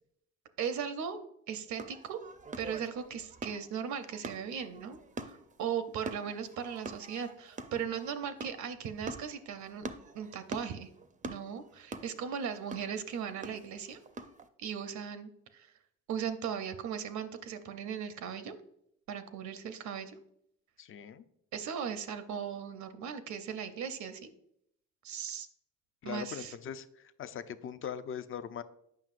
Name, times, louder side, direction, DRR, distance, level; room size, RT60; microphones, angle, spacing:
voice 1, 0.6-1.2 1.5-2.2 2.6-9.9 10.1-10.9 11.2-14.0 14.6-15.7 16.1-18.5 19.1-20.2 21.5-24.3 25.0-25.5 26.0-26.5, right 7 dB, 70° right, 10 dB, 0.6 m, -38 dB
sound 1, 1.7-14.5, right 3 dB, 25° right, 0.4 m, -45 dB
voice 2, 20.8-21.2 26.0-28.6, left 8 dB, 45° left, 12 dB, 0.5 m, -41 dB
7.6 x 5.6 x 2.5 m, 0.74 s
cardioid pair, 90°, 30 cm